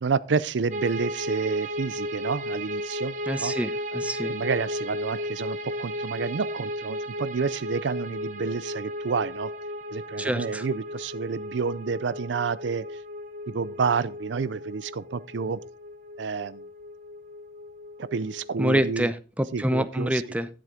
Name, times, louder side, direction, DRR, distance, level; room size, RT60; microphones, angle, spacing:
voice 1, 0.0-3.5 4.3-9.5 9.9-13.0 13.5-15.6 16.2-16.6 18.0-19.1 19.5-20.2, right 5 dB, 85° right, 0.5 m, -29 dB
sound 1, 0.7-19.0, equal, 40° right, 0.9 m, -35 dB
voice 2, 3.3-4.3 10.2-10.7 18.6-20.5, equal, 5° right, 0.5 m, -27 dB
11.0 x 7.6 x 3.7 m
head